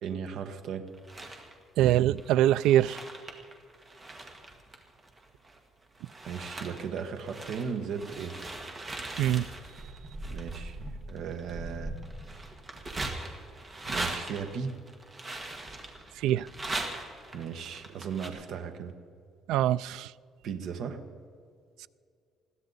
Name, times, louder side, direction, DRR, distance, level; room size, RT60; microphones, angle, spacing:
voice 1, 0.0-0.9 6.2-8.4 10.2-12.0 13.9-14.7 17.3-18.9 20.4-21.0, right 6 dB, 55° right, 1.1 m, -36 dB
sound 1, 0.9-1.5 2.2-5.6 5.9-18.3, right 2 dB, 20° right, 1.6 m, -40 dB
voice 2, 1.8-3.0 9.2-9.5 16.2-16.5 19.5-20.1, right 12 dB, 80° right, 0.3 m, -23 dB
21.0 x 15.5 x 4.0 m
cardioid pair, 175°, 0 cm